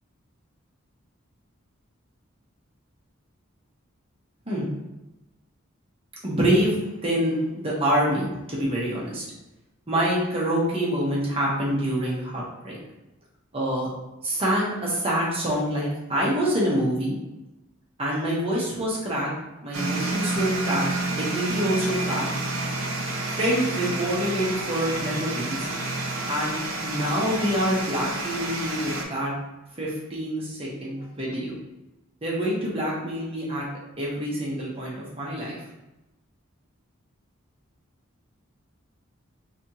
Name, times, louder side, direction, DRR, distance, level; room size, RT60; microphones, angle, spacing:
voice 1, 6.2-9.2 9.9-12.8 13.5-13.9 14.2-17.1 18.0-19.3 19.6-22.3 23.4-25.7 26.3-29.3 29.8-31.5 32.2-33.7 34.0-35.6, equal, 25° right, -5 dB, 0.9 m, -26 dB
sound 1, 19.7-29.0, right 2 dB, 80° right, 0.7 m, -29 dB
4.1 x 2.9 x 2.9 m, 0.99 s
head